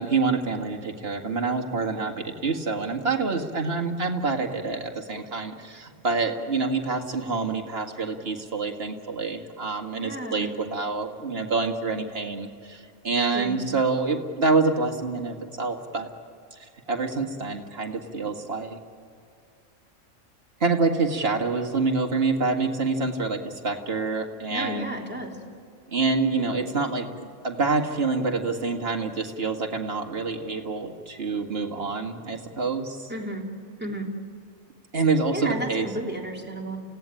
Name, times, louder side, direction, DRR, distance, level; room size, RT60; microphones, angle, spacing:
voice 1, 0.0-16.1 16.5-18.8 20.6-24.9 25.9-33.1 34.9-35.9, right 4 dB, 50° right, 4 dB, 2.1 m, -27 dB
voice 2, 9.9-10.5 13.3-13.6 24.5-25.3 33.1-33.4 33.8-34.0 35.3-35.7 35.9-36.8, right 1 dB, 10° right, -1 dB, 3.3 m, -32 dB
29.5 x 17.0 x 9.0 m, 2.3 s
omnidirectional pair, 1.3 m